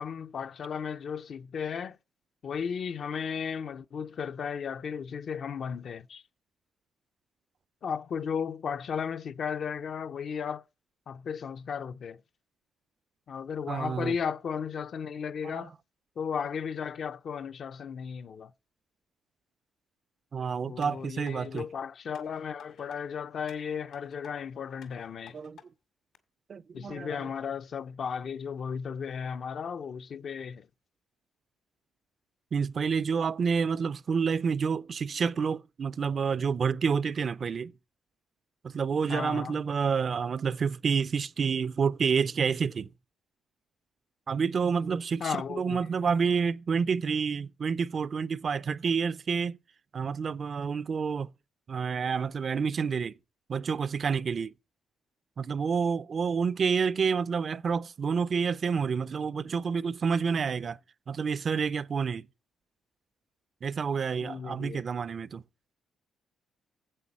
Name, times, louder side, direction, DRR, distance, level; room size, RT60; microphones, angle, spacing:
voice 1, 0.0-2.0 2.4-6.2 7.8-10.6 11.1-12.2 13.3-15.7 16.2-18.5 20.7-25.4 26.7-30.7 39.1-39.6 45.2-45.8 64.2-64.8, left 7 dB, 50° left, 0.5 m, -35 dB
voice 2, 13.7-14.1 15.4-15.7 20.3-21.7 25.3-25.6 26.5-27.3 32.5-37.7 38.6-42.9 44.3-49.6 49.9-51.3 51.7-53.1 53.5-54.5 55.4-60.8 61.1-62.3 63.6-65.4, right 6 dB, 40° right, 0.4 m, -29 dB
sound 1, 20.8-21.7 22.1-23.0 23.5-24.3 24.8-25.7 26.1-26.2, left 8 dB, 75° left, 2.0 m, -54 dB
9.9 x 7.8 x 4.2 m
cardioid pair, 120°, 0 cm